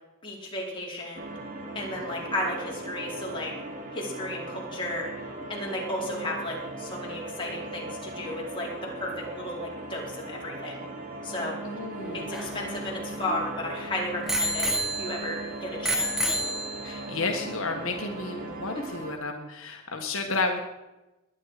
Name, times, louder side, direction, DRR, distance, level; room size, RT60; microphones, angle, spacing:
voice 1, 0.2-1.4 1.7-3.5 3.9-5.1 5.5-10.9 11.2-11.6 12.1-14.7 15.0-16.1 18.7-18.8, left 1 dB, 25° left, -3 dB, 4.4 m, -34 dB
sound 1, 1.1-19.1, right 2 dB, 40° right, 3.0 m, -38 dB
voice 2, 11.6-12.8 16.8-20.6, left 3 dB, 75° left, 3 dB, 1.5 m, -32 dB
Bicycle bell, 12.0-13.6 14.3-15.4 15.8-17.1 17.8-17.9, equal, ahead, 1.8 m, -30 dB
21.0 x 10.0 x 5.0 m, 1.0 s
head